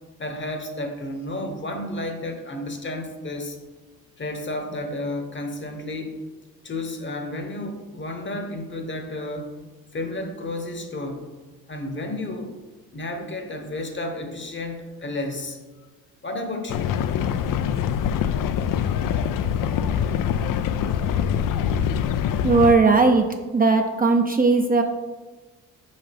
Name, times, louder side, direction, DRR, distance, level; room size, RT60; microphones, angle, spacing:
voice 1, 0.2-3.6 4.2-6.2 6.6-9.5 9.9-11.2 11.7-12.5 12.9-15.6 16.2-16.9, left 1 dB, 35° left, 6 dB, 1.0 m, -32 dB
sound 1, 16.7-22.8, left 8 dB, 65° left, 0.5 m, -24 dB
voice 2, 22.4-23.3 23.5-24.8, right 3 dB, 25° right, 4 dB, 0.5 m, -17 dB
5.5 x 5.4 x 3.4 m, 1.3 s
cardioid pair, 70°, 34 cm